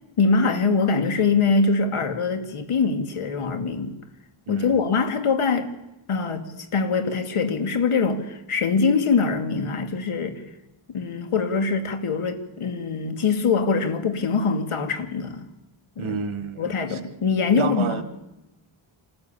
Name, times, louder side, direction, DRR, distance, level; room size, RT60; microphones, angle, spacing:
voice 1, 0.2-4.0 4.5-5.7 6.1-10.4 10.9-15.5 16.0-16.1 16.6-18.0, left 4 dB, 85° left, 2.4 m, -23 dB
voice 2, 4.5-4.9 16.0-17.0 17.5-18.0, right 6 dB, 70° right, 1.7 m, -30 dB
27.5 x 13.5 x 8.6 m
wide cardioid pair, 115°, 50 cm